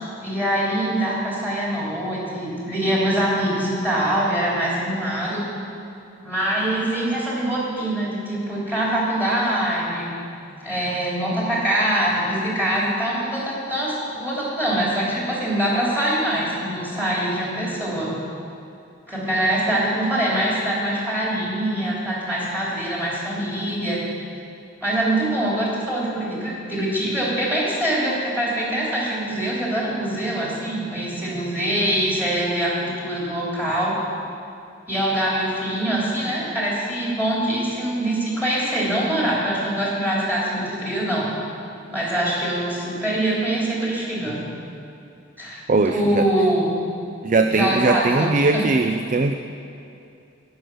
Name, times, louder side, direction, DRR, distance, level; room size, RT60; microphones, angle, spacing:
voice 1, 0.2-5.4 6.2-10.1 10.6-18.1 19.1-24.0 24.8-33.9 34.9-41.3 41.9-44.4 45.4-46.7 47.5-48.6, right 1 dB, 10° right, -7 dB, 3.4 m, -24 dB
voice 2, 45.7-46.3 47.2-49.3, right 3 dB, 40° right, 7 dB, 0.4 m, -20 dB
19.0 x 6.5 x 6.3 m, 2.6 s
head